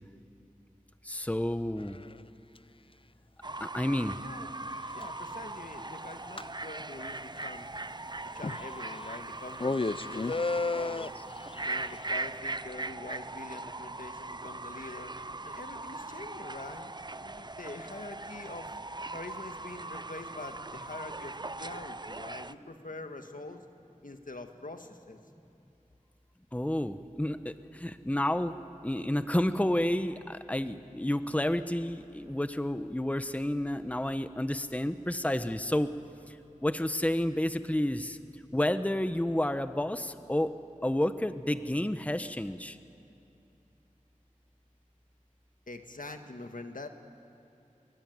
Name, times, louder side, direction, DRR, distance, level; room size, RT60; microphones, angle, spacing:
voice 1, 1.0-2.0 3.6-4.2 26.5-28.5 28.8-35.9 36.3-36.4 36.6-38.2 38.5-40.5 40.8-42.8, left 1 dB, 10° left, 11 dB, 0.9 m, -30 dB
sound 1, 1.9-2.0 4.8-5.1 5.8-6.0 6.2-6.5 7.4-7.5 7.7-7.8 8.4-9.2 9.6-12.1, left 3 dB, 40° left, 0.6 m, -32 dB
Fowl / Bird, 3.4-22.5, right 2 dB, 35° right, 0.6 m, -40 dB
voice 2, 4.9-7.7 8.3-11.2 11.6-15.1 15.4-16.9 17.2-18.7 19.1-23.6 24.0-25.2 45.7-46.9, left 2 dB, 85° left, 6 dB, 1.7 m, -44 dB
25.0 x 23.0 x 9.4 m, 2.8 s
wide cardioid pair, 45°, 14 cm